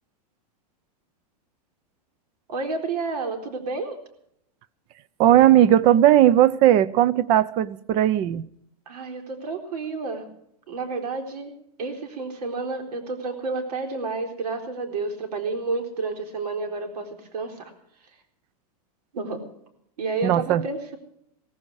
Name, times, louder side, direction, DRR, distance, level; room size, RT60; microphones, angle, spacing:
voice 1, 2.5-4.0 8.9-10.3 10.7-11.5 11.8-17.7 19.1-19.4 20.0-21.0, right 3 dB, 75° right, 4.1 m, -30 dB
voice 2, 5.2-8.4 20.2-20.6, right 12 dB, 25° right, 0.5 m, -17 dB
17.5 x 15.0 x 4.8 m
supercardioid pair, 165°, 20 cm